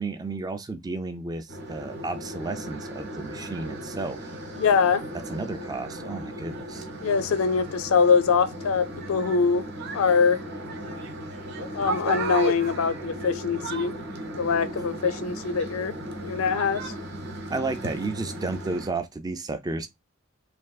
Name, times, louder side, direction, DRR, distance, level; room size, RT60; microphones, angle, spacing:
voice 1, 0.0-4.3 5.3-6.9 17.5-19.9, right 3 dB, 20° right, 0.3 m, -32 dB
sound 1, 1.5-18.9, right 1 dB, 55° right, 0.8 m, -35 dB
voice 2, 4.6-5.0 7.0-9.7 9.9-10.4 11.7-13.9 14.3-15.9 16.2-16.9, left 5 dB, 80° left, 0.4 m, -23 dB
3.3 x 2.5 x 2.3 m
head